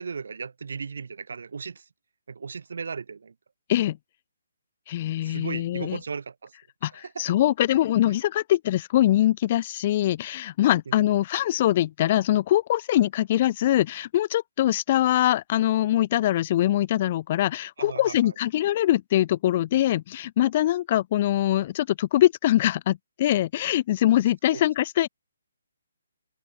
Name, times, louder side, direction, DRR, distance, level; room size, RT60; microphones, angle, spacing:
voice 1, 0.0-1.8 2.3-3.3 5.2-6.5 6.9-7.2 8.1-8.2 10.9-11.0 17.8-18.3 24.5-24.6, right 5 dB, 70° right, 0.6 m, -36 dB
voice 2, 4.9-6.0 6.8-25.1, left 13 dB, 35° left, 0.3 m, -23 dB
open air
hypercardioid pair, 155°, 0 cm